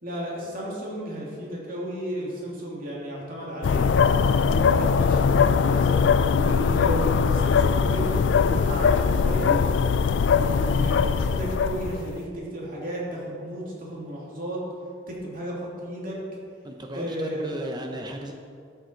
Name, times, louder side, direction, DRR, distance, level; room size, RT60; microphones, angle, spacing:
voice 1, 0.0-3.9 4.4-6.1 6.4-9.6 10.2-14.6 15.1-16.2 16.9-17.5, right 1 dB, 50° right, -5 dB, 2.9 m, -33 dB
sound 1, 3.6-12.2, left 6 dB, 90° left, 0.4 m, -21 dB
voice 2, 16.6-18.3, equal, 25° right, 3 dB, 0.7 m, -35 dB
12.5 x 7.6 x 4.6 m, 2.3 s
head